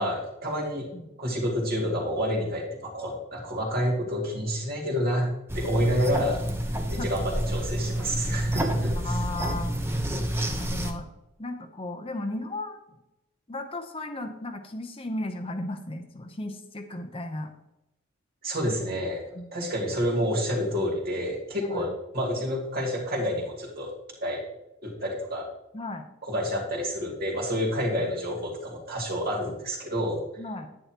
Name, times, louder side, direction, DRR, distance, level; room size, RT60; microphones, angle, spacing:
voice 1, 0.0-0.9 1.2-5.3 5.5-6.4 6.9-9.2 18.4-19.2 19.5-23.9 24.2-24.4 24.8-25.5 26.2-30.2, equal, 45° right, -2 dB, 2.6 m, -29 dB
sound 1, 5.5-10.9, right 1 dB, 10° right, 0.9 m, -28 dB
voice 2, 9.0-10.0 10.6-11.1 11.4-12.8 13.5-17.5 19.3-19.5 21.6-21.9 25.7-26.1 30.4-30.7, left 1 dB, 25° left, 5 dB, 0.8 m, -35 dB
10.0 x 9.7 x 3.0 m, 0.88 s
head